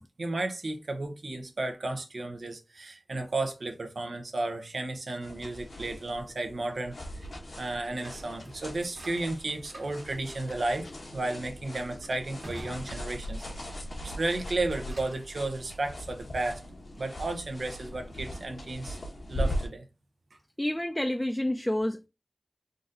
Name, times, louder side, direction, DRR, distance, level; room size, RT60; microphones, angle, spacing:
voice 1, 0.2-7.3 7.6-10.9 11.1-16.6 17.0-19.0 19.3-19.8, right 2 dB, 85° right, 0.7 m, -33 dB
sound 1, 5.2-19.7, equal, 80° left, 1.4 m, -39 dB
sound 2, 7.6-13.7 14.1-15.3, equal, 70° right, 1.4 m, -50 dB
voice 2, 20.6-22.1, left 1 dB, 15° left, 0.5 m, -29 dB
3.9 x 2.6 x 3.9 m
wide cardioid pair, 45°, 0 cm